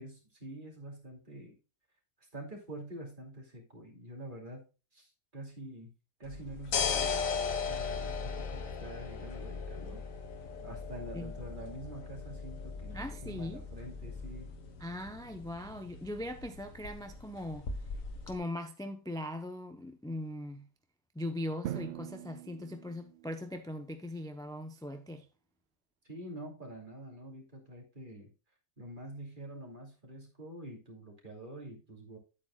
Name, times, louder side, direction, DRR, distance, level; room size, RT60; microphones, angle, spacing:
voice 1, 0.0-1.6 2.3-4.7 4.9-5.9 6.2-10.0 10.6-14.5 26.0-28.3 28.8-32.2, right 1 dB, 35° right, 3.0 m, -46 dB
sound 1, 6.2-18.3, left 5 dB, 70° left, 1.7 m, -38 dB
voice 2, 12.9-13.6 14.8-17.7 18.3-20.7 21.1-25.3, left 1 dB, 5° left, 0.5 m, -40 dB
Drum, 21.6-23.6, right 11 dB, 65° right, 0.7 m, -42 dB
9.9 x 8.6 x 2.3 m
omnidirectional pair, 1.5 m